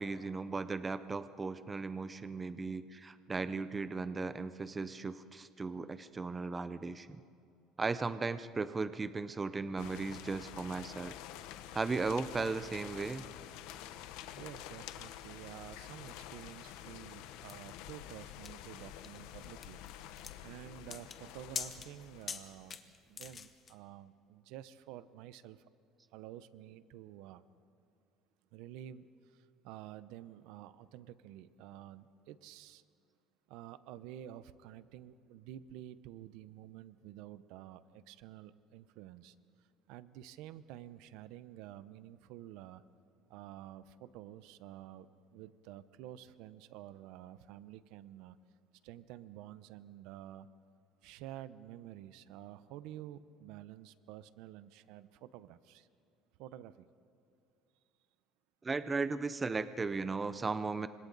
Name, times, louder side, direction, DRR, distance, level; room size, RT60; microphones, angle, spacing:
voice 1, 0.0-7.2 7.8-11.1 11.7-13.3 58.6-60.9, right 4 dB, 15° right, 12 dB, 0.5 m, -36 dB
sound 1, 9.8-22.7, left 11 dB, 80° left, 1.0 m, -49 dB
voice 2, 14.0-19.8 20.4-25.7 26.1-27.4 28.5-32.8 33.5-42.8 43.3-48.4 48.8-50.5 51.0-55.9 56.4-56.9, right 12 dB, 70° right, 15 dB, 0.7 m, -50 dB
sound 2, 17.5-23.7, left 6 dB, 25° left, 1.0 m, -45 dB
30.0 x 25.5 x 4.0 m, 2.6 s
cardioid pair, 165°, 0 cm